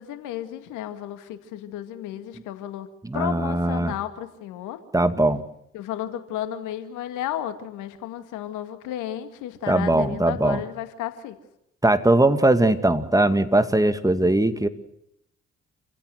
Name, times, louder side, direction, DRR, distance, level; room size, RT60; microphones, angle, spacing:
voice 1, 0.0-2.9 3.1-4.8 5.7-11.4, left 11 dB, 70° left, 10 dB, 2.2 m, -33 dB
voice 2, 3.0-3.9 4.9-5.4 9.7-10.6 11.8-14.7, right 2 dB, 10° right, 10 dB, 2.3 m, -20 dB
28.0 x 16.0 x 8.1 m, 0.81 s
hypercardioid pair, 45°, 32 cm